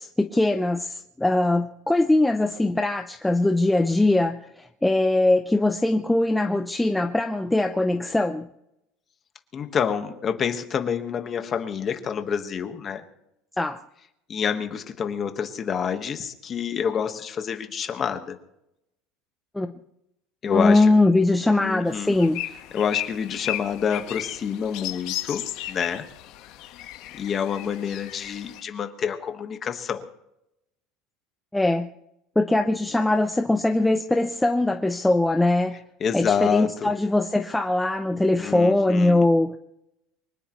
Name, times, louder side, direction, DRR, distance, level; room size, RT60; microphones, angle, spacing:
voice 1, 0.0-8.5 13.6-13.8 19.5-19.7 20.5-22.4 31.5-31.9 32.4-35.8 36.1-39.6, left 2 dB, 5° left, 6 dB, 0.5 m, -21 dB
voice 2, 9.5-13.0 14.3-18.4 20.4-20.9 21.5-22.2 22.7-26.1 27.1-30.1 36.0-36.9 38.4-39.3, left 7 dB, 25° left, 7 dB, 1.4 m, -27 dB
sound 1, 21.9-28.6, left 14 dB, 55° left, 1.4 m, -35 dB
24.5 x 18.0 x 3.1 m, 0.83 s
cardioid pair, 160°, 0 cm